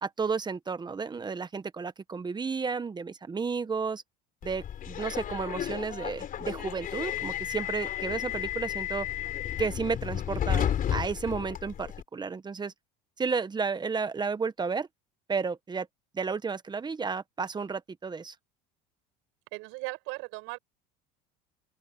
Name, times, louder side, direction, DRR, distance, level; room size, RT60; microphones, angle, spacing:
voice 1, 0.0-4.0 4.4-9.1 9.6-12.7 13.2-14.9 15.3-15.9 16.1-18.3, right 5 dB, 20° right, 1.4 m, -32 dB
Subway metro underground, 4.4-12.0, left 10 dB, 45° left, 4.6 m, -33 dB
voice 2, 19.5-20.6, right 25 dB, 75° right, 7.9 m, -37 dB
open air
supercardioid pair, 100°, 20 cm